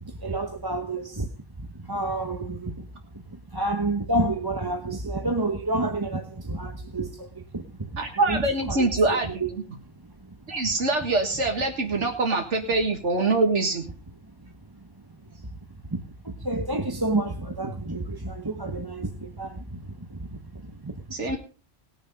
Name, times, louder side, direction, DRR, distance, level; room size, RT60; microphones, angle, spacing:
voice 1, 0.2-1.3 1.9-2.7 3.5-7.6 8.3-8.4 8.7-8.9 9.4-9.5 10.5-10.6 15.9-19.8 20.1-20.9, right 2 dB, 20° right, 1.1 m, -29 dB
voice 2, 8.0-9.4 10.5-13.9 21.1-21.4, right 2 dB, 90° right, 2.0 m, -24 dB
19.5 x 7.1 x 5.3 m
omnidirectional pair, 1.2 m